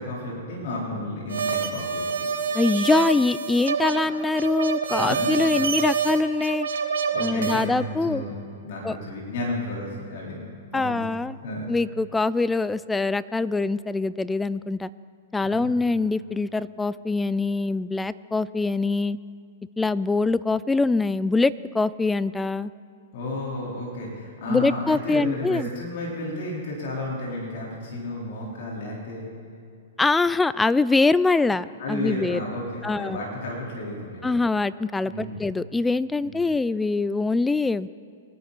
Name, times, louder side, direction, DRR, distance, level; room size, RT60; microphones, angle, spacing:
voice 1, 0.0-2.3 4.0-4.1 4.9-5.6 7.1-8.3 8.6-10.4 10.7-11.0 11.4-11.7 15.4-15.7 23.1-29.3 31.8-34.3 35.0-35.4 36.2-36.3, left 1 dB, 60° left, -4 dB, 3.8 m, -32 dB
sound 1, 1.3-7.7, right 6 dB, 80° right, 1.4 m, -27 dB
voice 2, 2.5-6.7 7.2-8.2 8.8-9.0 10.7-11.4 11.7-14.9 15.3-19.2 19.8-22.7 24.5-25.7 30.0-32.4 32.8-33.2 34.2-37.9, left 3 dB, 10° left, 17 dB, 0.4 m, -23 dB
23.0 x 10.5 x 4.1 m, 2.4 s
hypercardioid pair, 125°, 0 cm